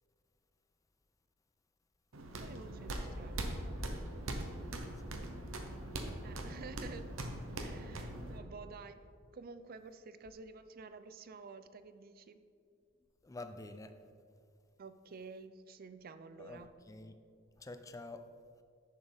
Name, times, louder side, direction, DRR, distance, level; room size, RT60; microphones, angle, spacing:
sound 1, 2.1-8.4, right 1 dB, 75° right, 0.9 m, -41 dB
voice 1, 2.4-3.4 6.2-7.1 7.6-9.1 9.3-12.4 14.8-16.7, right 4 dB, 45° right, 11 dB, 0.4 m, -50 dB
voice 2, 13.2-14.0 16.4-17.2 17.6-18.3, left 2 dB, 15° left, 9 dB, 0.4 m, -48 dB
10.5 x 6.5 x 3.4 m, 2.3 s
head